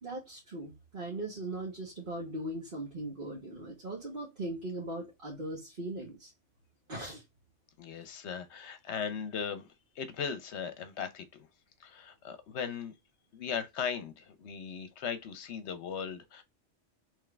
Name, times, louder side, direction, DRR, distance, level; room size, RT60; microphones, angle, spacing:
voice 1, 0.0-6.3 6.9-7.2, right 1 dB, 45° right, 1.4 m, -39 dB
voice 2, 7.8-9.7 10.0-11.5 11.8-12.9 13.3-16.4, left 7 dB, 70° left, 1.0 m, -38 dB
3.6 x 3.2 x 3.3 m
omnidirectional pair, 1.2 m